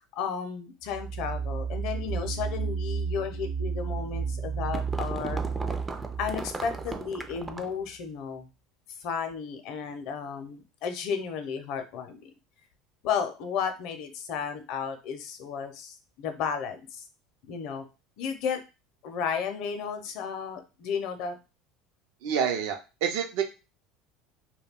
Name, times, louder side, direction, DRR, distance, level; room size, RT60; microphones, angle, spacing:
voice 1, 0.1-5.4 6.2-8.5 9.0-12.3 13.0-17.0 17.5-17.8 18.2-18.6 19.0-21.4, left 6 dB, 65° left, 7 dB, 0.6 m, -33 dB
sound 1, 0.8-7.5, right 5 dB, 45° right, 0.8 m, -33 dB
sound 2, 4.1-7.8, right 3 dB, 20° right, 0.4 m, -37 dB
voice 2, 22.2-23.4, right 7 dB, 75° right, 4 dB, 0.6 m, -28 dB
2.3 x 2.2 x 3.5 m, 0.29 s
supercardioid pair, 110°, 0 cm